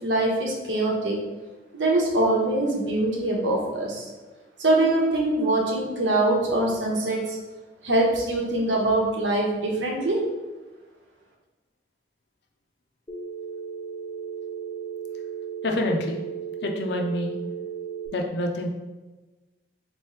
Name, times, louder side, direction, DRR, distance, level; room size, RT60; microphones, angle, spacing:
voice 1, 0.0-1.2 1.7-4.1 4.6-7.4 7.8-10.2, right 2 dB, 85° right, -2 dB, 1.0 m, -23 dB
Telephone, 13.1-18.1, right 7 dB, 25° left, 0.6 m, -35 dB
voice 2, 15.6-16.2 16.6-17.3 18.1-18.7, left 1 dB, 65° left, 2 dB, 0.5 m, -27 dB
4.1 x 3.1 x 3.1 m, 1.2 s
head